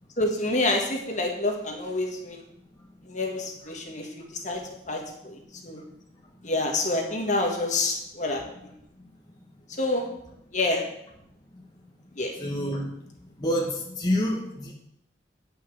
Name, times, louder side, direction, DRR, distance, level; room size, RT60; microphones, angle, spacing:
voice 1, 0.2-2.4 3.0-4.6 4.9-5.8 6.4-8.4 9.8-10.1 10.5-10.8 12.2-12.4, left 2 dB, 45° left, 2 dB, 1.7 m, -27 dB
voice 2, 12.4-12.9 13.4-14.7, equal, 20° left, -2 dB, 1.4 m, -27 dB
9.2 x 5.6 x 7.7 m, 0.78 s
head